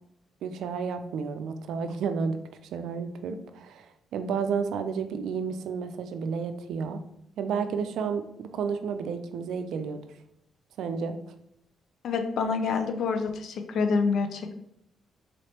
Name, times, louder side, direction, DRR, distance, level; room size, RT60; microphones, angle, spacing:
voice 1, 0.4-2.4 2.7-7.0 7.4-10.0 10.8-11.2, right 6 dB, 75° right, 8 dB, 0.4 m, -31 dB
voice 2, 12.0-14.6, left 5 dB, 70° left, 6 dB, 0.5 m, -27 dB
4.2 x 3.1 x 2.9 m, 0.79 s
supercardioid pair, 60°, 0 cm